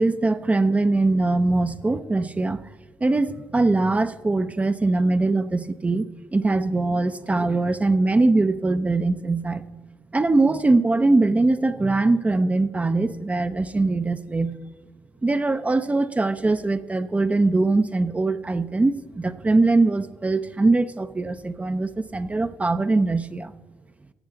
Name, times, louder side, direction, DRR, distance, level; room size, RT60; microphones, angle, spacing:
voice 1, 0.0-2.6 3.0-9.6 10.1-14.6 15.2-23.5, right 2 dB, 20° right, 11 dB, 0.5 m, -22 dB
14.0 x 8.7 x 3.8 m, 1.2 s
supercardioid pair, 60°, 6 cm